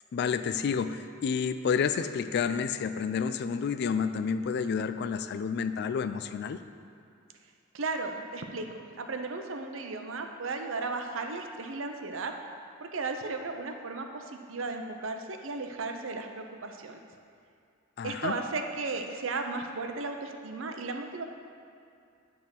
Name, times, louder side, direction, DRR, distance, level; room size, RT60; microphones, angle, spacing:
voice 1, 0.1-6.6 18.0-18.4, left 6 dB, 55° left, 10 dB, 0.3 m, -30 dB
voice 2, 7.7-12.3 12.8-17.0 18.0-21.2, right 3 dB, 70° right, 5 dB, 0.6 m, -35 dB
9.6 x 3.6 x 5.9 m, 2.5 s
head